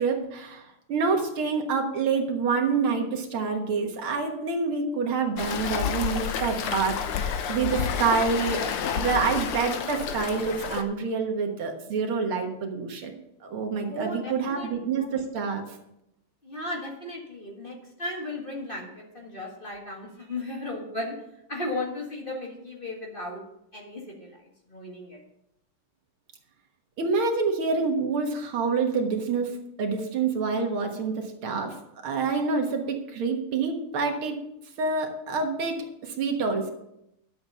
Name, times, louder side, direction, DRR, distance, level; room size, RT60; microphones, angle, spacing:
voice 1, 0.0-13.1 13.4-15.7 27.0-31.8 32.0-34.4 34.8-36.7, right 4 dB, 75° right, 3 dB, 2.2 m, -27 dB
Waves surf, 5.4-10.8, left 7 dB, 85° left, 1.8 m, -30 dB
voice 2, 13.9-15.1 16.4-21.2 21.5-23.4 23.7-24.4 24.7-25.2, left 1 dB, 25° left, -2 dB, 1.7 m, -35 dB
11.0 x 7.7 x 5.6 m, 0.82 s
omnidirectional pair, 2.4 m